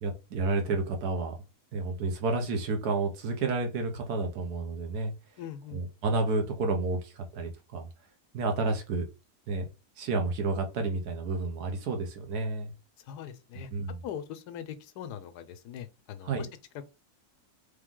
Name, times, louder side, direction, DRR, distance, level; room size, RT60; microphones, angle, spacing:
voice 1, 0.0-1.3 1.7-5.1 5.7-7.9 8.3-9.0 9.5-9.6 10.0-12.7 13.7-14.0 16.2-16.5, right 3 dB, 75° right, 1.5 m, -30 dB
voice 2, 5.4-5.8 13.1-13.7 14.0-16.5, left 9 dB, 85° left, 1.2 m, -41 dB
3.6 x 3.3 x 3.6 m
omnidirectional pair, 1.7 m